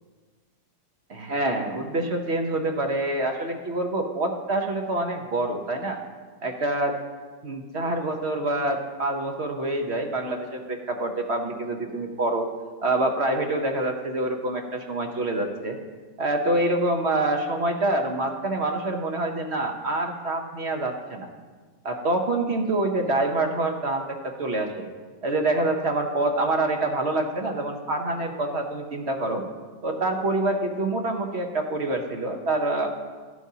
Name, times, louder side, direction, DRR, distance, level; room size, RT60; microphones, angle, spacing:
voice 1, 1.1-6.0 6.4-7.0 7.4-12.5 12.8-15.8 16.2-21.3 21.8-24.9 25.2-29.4 29.8-32.9, right 2 dB, 50° right, 3 dB, 1.0 m, -26 dB
13.0 x 11.0 x 2.8 m, 1.5 s
omnidirectional pair, 1.7 m